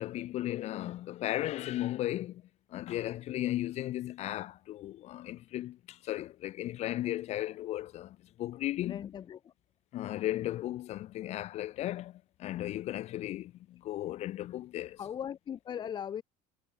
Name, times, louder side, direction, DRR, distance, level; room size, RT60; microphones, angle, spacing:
voice 1, 0.0-2.4 2.7-9.0 9.9-15.0, left 14 dB, 45° left, 1.5 m, -36 dB
voice 2, 8.8-9.5 15.0-16.2, left 9 dB, 30° left, 1.0 m, -39 dB
cardioid pair, 150°, 16 cm